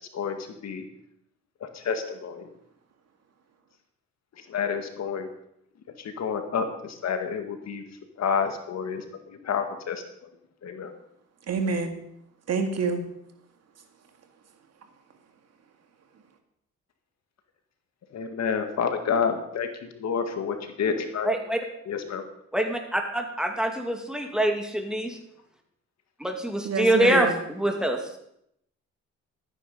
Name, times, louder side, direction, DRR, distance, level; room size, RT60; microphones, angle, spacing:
voice 1, 0.1-0.9 1.6-2.5 4.4-5.3 6.0-7.9 8.2-10.3 10.6-10.9 18.1-19.7 19.9-21.3 21.9-22.2, left 6 dB, 60° left, 6 dB, 1.9 m, -29 dB
voice 2, 11.5-11.9 12.5-13.0 26.6-27.4, right 4 dB, 55° right, 6 dB, 2.0 m, -26 dB
voice 3, 21.2-21.6 22.5-25.2 26.2-28.0, right 1 dB, ahead, 3 dB, 2.4 m, -25 dB
13.0 x 9.9 x 5.5 m, 0.74 s
cardioid pair, 90°, 30 cm